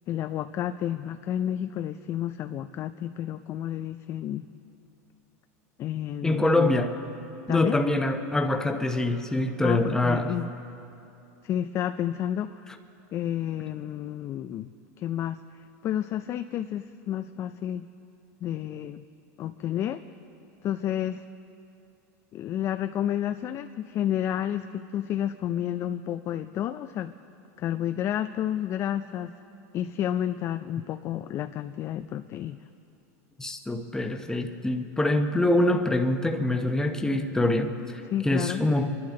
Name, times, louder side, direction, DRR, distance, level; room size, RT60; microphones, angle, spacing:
voice 1, 0.1-4.5 5.8-6.7 7.5-7.8 9.6-10.5 11.4-12.7 13.1-14.7 15.0-17.9 18.4-19.0 19.4-20.0 20.6-21.2 22.3-27.1 27.6-29.3 29.7-32.6 38.1-38.7, left 11 dB, 35° left, 9 dB, 0.4 m, -30 dB
voice 2, 6.2-6.9 7.5-10.3 33.4-38.9, left 1 dB, 5° left, 5 dB, 1.0 m, -25 dB
26.0 x 11.5 x 3.8 m, 2.8 s
supercardioid pair, 120°, 8 cm